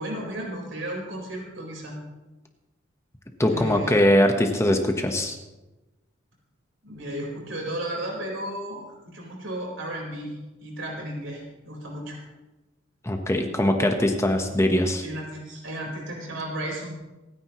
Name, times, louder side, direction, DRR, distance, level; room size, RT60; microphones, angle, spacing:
voice 1, 0.0-2.0 3.4-4.0 6.8-12.2 15.0-17.0, right 1 dB, 75° right, -1 dB, 4.6 m, -34 dB
voice 2, 3.4-5.3 13.0-15.0, left 1 dB, 15° left, 4 dB, 1.2 m, -21 dB
27.0 x 9.8 x 3.1 m, 1.1 s
head